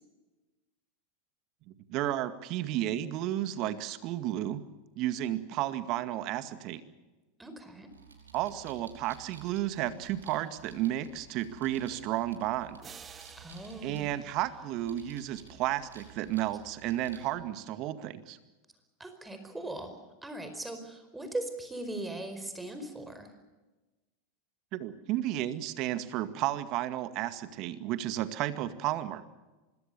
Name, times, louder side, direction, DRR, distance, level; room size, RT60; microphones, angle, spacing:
voice 1, 1.9-4.6 5.0-6.8 8.3-12.8 13.8-18.4 24.7-29.2, right 13 dB, 50° right, 11 dB, 2.0 m, -32 dB
voice 2, 7.4-7.9 13.4-14.2 19.0-23.3, right 2 dB, 10° right, 8 dB, 4.8 m, -39 dB
sound 1, 7.9-17.3, right 4 dB, 90° right, 5.3 m, -54 dB
sound 2, 12.8-15.5, right 7 dB, 25° right, 1.5 m, -52 dB
25.5 x 21.5 x 7.0 m, 1.1 s
hypercardioid pair, 90°, 0 cm